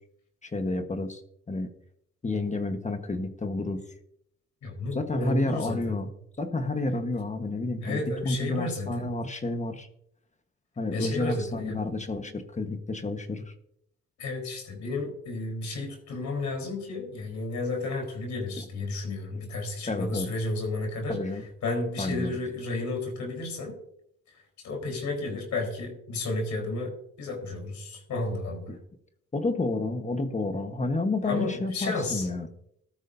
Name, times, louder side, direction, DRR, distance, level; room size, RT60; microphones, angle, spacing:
voice 1, 0.4-1.2 1.5-1.7 2.2-3.8 4.9-6.1 6.4-9.9 10.8-13.5 18.6-18.7 19.8-20.3 21.1-21.4 22.0-22.4 28.7-28.8 29.3-32.5, left 2 dB, 25° left, 7 dB, 1.3 m, -30 dB
voice 2, 4.6-6.0 7.8-9.1 10.9-11.8 14.2-21.2 21.6-23.7 24.6-26.9 27.2-28.7 31.2-32.3, left 2 dB, 65° left, 2 dB, 4.3 m, -32 dB
14.5 x 12.5 x 2.7 m, 0.73 s
cardioid pair, 90°, 30 cm